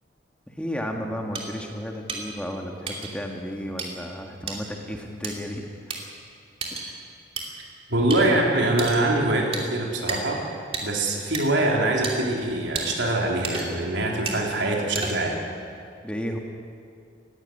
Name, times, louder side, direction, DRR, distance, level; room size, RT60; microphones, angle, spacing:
voice 1, 0.5-5.6 5.9-6.0 16.0-16.4, equal, 5° left, 2 dB, 1.7 m, -33 dB
sound 1, 1.3-1.4 2.1-2.2 2.9-3.1 3.8-3.9 4.5-4.6 5.2-5.3 5.9-6.0 6.6-6.9 7.4-7.5 8.1-8.2 8.8-9.0 9.5-9.6 10.1-10.2 10.7-10.8 11.3-11.4 12.0-12.1 12.7-12.9 13.4-13.8 14.3-14.4 14.9-15.3, right 4 dB, 30° right, 2.9 m, -31 dB
voice 2, 7.9-10.4 10.8-15.4, right 2 dB, 80° right, 0 dB, 3.7 m, -24 dB
18.5 x 16.0 x 9.7 m, 2.3 s
head